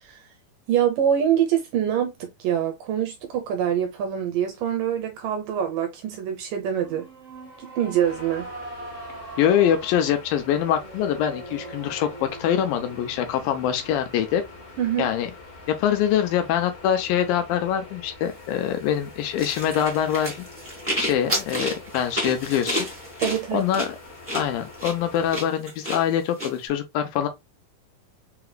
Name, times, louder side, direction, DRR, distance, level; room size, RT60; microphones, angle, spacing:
voice 1, 0.7-7.1 7.6-8.5 14.8-15.1 23.2-23.7, right 9 dB, 75° right, 2.2 m, -25 dB
sound 1, 6.8-16.1, right 2 dB, 35° right, 0.6 m, -43 dB
sound 2, 8.0-25.4, left 3 dB, 45° left, 1.2 m, -45 dB
voice 2, 9.4-14.4 15.0-15.3 15.7-20.5 21.0-22.9 23.5-24.0 24.3-27.3, left 9 dB, 75° left, 2.4 m, -24 dB
sound 3, 19.4-26.5, equal, 10° right, 0.9 m, -30 dB
5.8 x 3.0 x 2.2 m
omnidirectional pair, 4.4 m